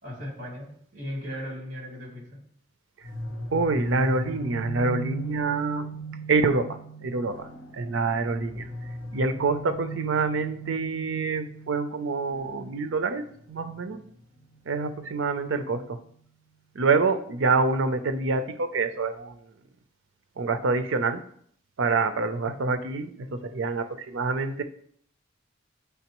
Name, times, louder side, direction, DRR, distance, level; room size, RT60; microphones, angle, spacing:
voice 1, 0.0-2.3, equal, 45° right, -4 dB, 2.5 m, -37 dB
sound 1, 3.0-15.8, right 2 dB, 75° left, 0.9 m, -38 dB
voice 2, 3.5-5.9 6.3-7.5 7.7-8.7 9.1-14.0 14.7-16.0 16.8-19.3 20.4-21.2 21.8-24.6, right 4 dB, 75° right, 9 dB, 0.5 m, -26 dB
9.2 x 3.5 x 3.0 m, 0.64 s
head